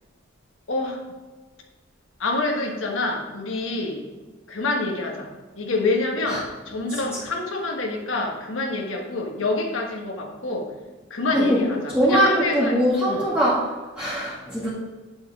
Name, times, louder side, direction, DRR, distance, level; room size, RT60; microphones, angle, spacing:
voice 1, 0.7-1.0 2.2-4.0 4.5-5.3 5.6-10.7 11.1-12.8 13.1-13.2, left 2 dB, 75° left, 1 dB, 1.4 m, -27 dB
voice 2, 11.9-13.6 14.0-14.7, equal, 5° right, -9 dB, 2.1 m, -21 dB
9.6 x 7.6 x 3.7 m, 1.3 s
head